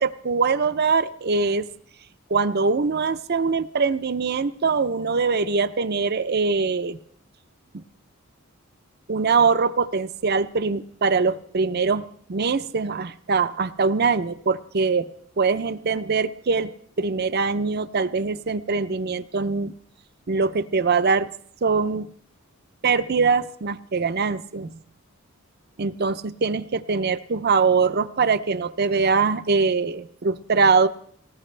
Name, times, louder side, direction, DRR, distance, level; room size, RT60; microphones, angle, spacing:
voice 1, 0.0-1.7 2.3-7.0 9.1-12.0 12.3-15.0 15.4-16.7 17.0-19.7 20.3-21.3 21.6-22.1 22.8-24.7 25.8-30.9, right 4 dB, 50° right, 13 dB, 0.6 m, -22 dB
19.0 x 18.0 x 3.3 m, 0.63 s
head